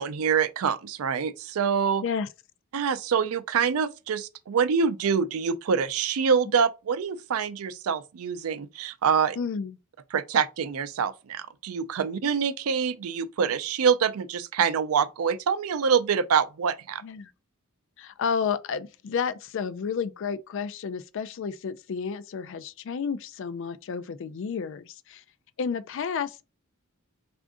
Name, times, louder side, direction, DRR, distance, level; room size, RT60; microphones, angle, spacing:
voice 1, 0.0-2.0 2.7-9.4 10.1-17.0, right 6 dB, 80° right, 0.4 m, -25 dB
voice 2, 9.4-9.8 17.0-17.3 18.0-25.2 25.6-26.4, left 6 dB, 60° left, 0.3 m, -31 dB
3.5 x 2.5 x 3.5 m
head